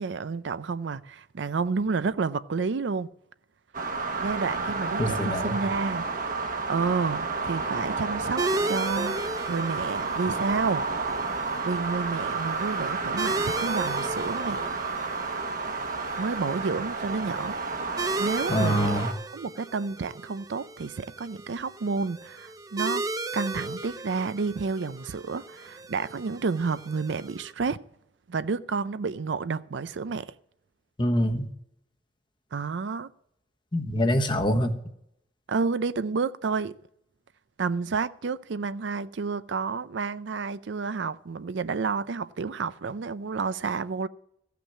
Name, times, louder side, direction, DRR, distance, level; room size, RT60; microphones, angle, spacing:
voice 1, 0.0-3.1 4.2-6.1 6.7-9.2 9.5-10.8 11.6-14.7 16.2-17.6 18.2-19.0 19.3-23.1 23.3-27.8 28.3-30.3 32.5-33.1 35.5-36.7 37.6-44.1, right 4 dB, 85° right, 0.5 m, -30 dB
sound 1, 3.7-19.1, right 4 dB, 50° right, 1.2 m, -31 dB
voice 2, 5.0-5.6 18.5-19.1 31.0-31.5 33.7-34.8, equal, 25° left, 1.1 m, -25 dB
sound 2, 8.4-27.5, right 2 dB, 20° right, 0.6 m, -36 dB
15.0 x 5.8 x 7.4 m
head